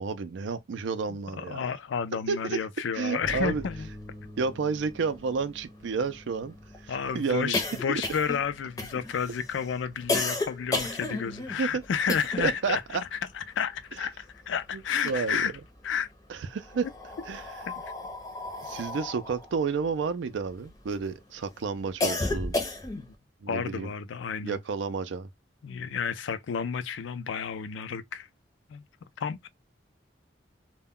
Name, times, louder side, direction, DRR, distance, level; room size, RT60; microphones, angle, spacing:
voice 1, 0.0-1.7 2.3-2.6 2.9-3.6 4.4-6.6 6.8-7.6 7.9-8.0 10.9-11.0 11.6-11.8 12.4-13.0 14.7-15.5 16.3-16.9 17.3-17.4 18.6-22.6 23.4-23.9 24.4-25.3, right 5 dB, 75° right, 0.4 m, -31 dB
voice 2, 1.1-3.9 6.9-12.8 13.1-15.5 15.8-16.1 17.7-17.8 22.9-23.0 23.5-24.6 25.6-28.3 28.7-28.8 29.2-29.5, left 7 dB, 80° left, 0.4 m, -31 dB
sound 1, 3.2-19.1, left 1 dB, 40° right, 0.7 m, -50 dB
sound 2, 4.4-4.5 4.7-4.8 5.1-12.6 12.9-14.5 14.8-15.8 16.5-21.0 21.4-23.1, left 2 dB, 20° left, 0.6 m, -33 dB
2.2 x 2.1 x 3.5 m
head